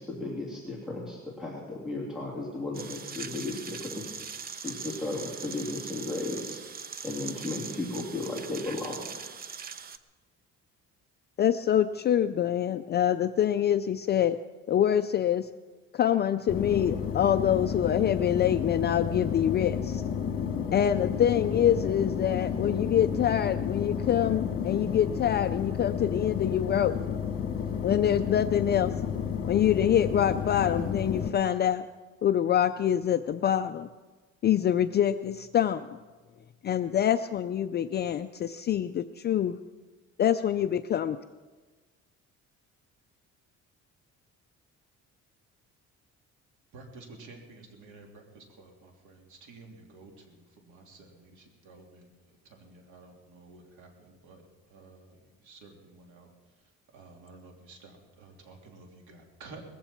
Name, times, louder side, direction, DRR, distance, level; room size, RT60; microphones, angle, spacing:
voice 1, 0.0-4.1 4.6-6.6 7.0-9.0, left 2 dB, ahead, -5 dB, 2.9 m, -35 dB
sound 1, 2.7-10.0, right 6 dB, 30° right, 0.7 m, -41 dB
voice 2, 11.4-14.4 14.7-15.5 15.9-20.0 20.7-27.0 27.8-28.9 29.4-31.9 32.2-33.9 34.4-36.0 36.6-39.6 40.2-41.2, left 10 dB, 35° left, 9 dB, 0.4 m, -25 dB
sound 2, 16.5-31.3, left 7 dB, 50° left, 2.0 m, -31 dB
voice 3, 46.7-54.4 54.7-56.3 56.9-59.6, right 3 dB, 85° right, 1 dB, 3.3 m, -51 dB
20.0 x 15.0 x 4.5 m, 1.3 s
cardioid pair, 155°, 29 cm